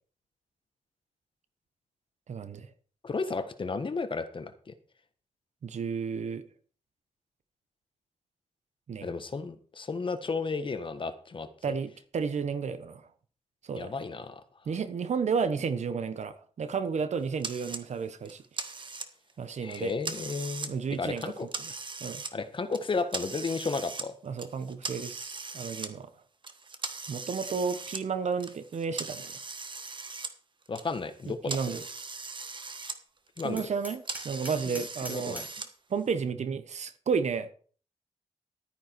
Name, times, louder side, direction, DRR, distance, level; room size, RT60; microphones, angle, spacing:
voice 1, 2.3-2.7 5.6-6.4 8.9-9.1 11.6-13.0 13.6-13.9 14.7-18.4 19.4-19.9 20.7-21.7 22.0-22.2 24.2-26.1 27.1-29.3 31.3-31.8 33.4-35.4 35.9-37.5, right 5 dB, 75° right, 1.2 m, -32 dB
voice 2, 3.0-4.5 9.0-11.5 13.7-14.4 19.6-21.5 22.3-24.1 30.7-31.6 33.4-33.7 35.1-35.5, left 4 dB, 45° left, 1.5 m, -33 dB
sound 1, 17.4-17.8 18.3-19.3 19.7-20.7 21.1-22.3 22.7-24.1 24.4-25.9 26.4-30.3 30.6-33.0 33.3-35.7, right 4 dB, 45° right, 1.5 m, -39 dB
Hammer, 33.6-35.6, right 1 dB, 15° right, 4.3 m, -43 dB
12.5 x 9.5 x 4.7 m
wide cardioid pair, 100°, 12 cm